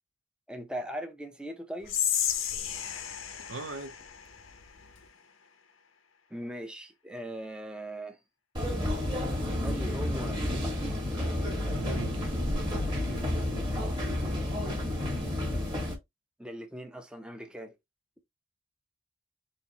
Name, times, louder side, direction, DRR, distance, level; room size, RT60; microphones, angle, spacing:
voice 1, 0.5-2.0 6.3-8.2 9.6-10.9 16.4-17.7, right 1 dB, 5° right, 0.6 m, -40 dB
Whispering, 1.8-5.1, left 9 dB, 90° left, 0.8 m, -33 dB
voice 2, 3.5-4.0 11.7-12.2, right 4 dB, 80° right, 0.7 m, -39 dB
sound 1, 8.5-15.9, left 1 dB, 25° right, 1.5 m, -30 dB
4.2 x 3.0 x 2.8 m
head